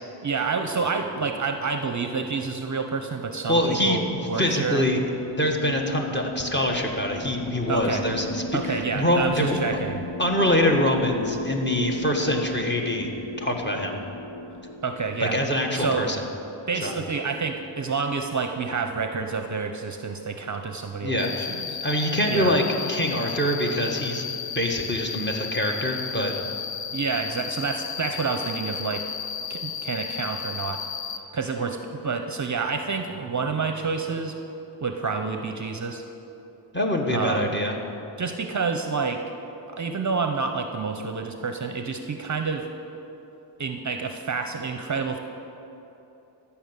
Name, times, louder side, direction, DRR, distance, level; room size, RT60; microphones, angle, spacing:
voice 1, 0.2-4.8 7.7-8.0 8.5-10.0 14.8-15.4 15.7-16.1 16.7-21.8 22.3-22.6 26.9-29.0 29.5-30.8 31.3-34.4 34.8-36.0 37.1-37.5 38.2-39.2 39.7-42.7 43.6-45.2, right 4 dB, 35° right, 6 dB, 0.7 m, -28 dB
voice 2, 3.5-4.0 4.4-5.0 5.4-9.6 10.2-13.1 13.4-14.0 15.2-16.2 16.8-16.9 21.0-21.5 21.8-22.6 22.9-24.2 24.5-26.3 36.7-37.7, left 1 dB, 20° left, 1 dB, 1.6 m, -24 dB
sound 1, 3.6-18.2, left 2 dB, 50° left, 1.0 m, -36 dB
Cricket, 21.2-31.2, left 7 dB, 90° left, 0.9 m, -33 dB
13.0 x 6.0 x 8.2 m, 3.0 s
cardioid pair, 80°, 50 cm